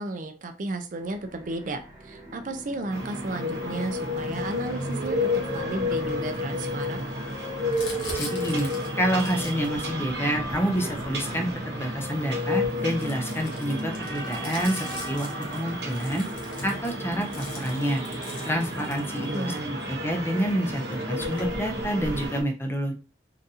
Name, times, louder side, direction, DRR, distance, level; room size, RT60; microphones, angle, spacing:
voice 1, 0.0-7.1 19.3-19.7, right 2 dB, 45° right, 7 dB, 0.4 m, -33 dB
sound 1, 0.9-11.7, right 1 dB, 15° right, 0.8 m, -44 dB
sound 2, 2.9-22.4, left 1 dB, 65° right, 0.9 m, -31 dB
Crumpling crinkling, 7.7-11.8 12.5-19.6 20.4-20.5 20.7-22.3, left 2 dB, 90° left, 1.2 m, -42 dB
voice 2, 8.1-8.7 9.0-16.3 16.6-18.0 18.5-22.9, equal, 15° left, 4 dB, 0.4 m, -28 dB
3.9 x 2.5 x 2.7 m, 0.34 s
head